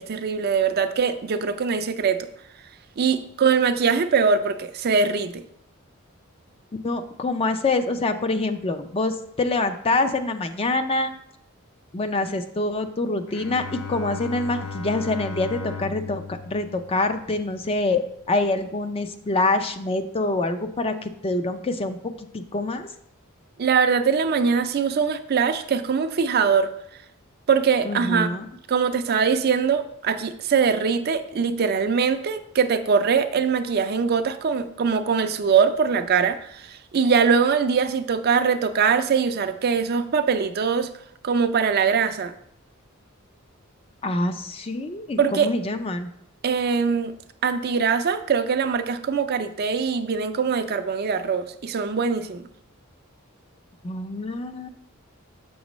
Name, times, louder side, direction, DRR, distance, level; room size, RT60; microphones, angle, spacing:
voice 1, 0.0-2.3 3.0-5.4 23.6-26.7 27.5-28.3 28.7-40.9 41.2-42.3 45.2-45.5 46.4-47.1 47.4-52.5, right 6 dB, 50° right, 9 dB, 0.4 m, -22 dB
voice 2, 6.8-11.1 11.9-18.0 18.3-22.9 27.8-28.5 44.0-46.1 53.8-54.7, left 2 dB, 25° left, 8 dB, 0.4 m, -25 dB
Bowed string instrument, 13.3-17.8, left 4 dB, 70° left, 0.7 m, -36 dB
7.2 x 6.2 x 3.0 m, 0.72 s
head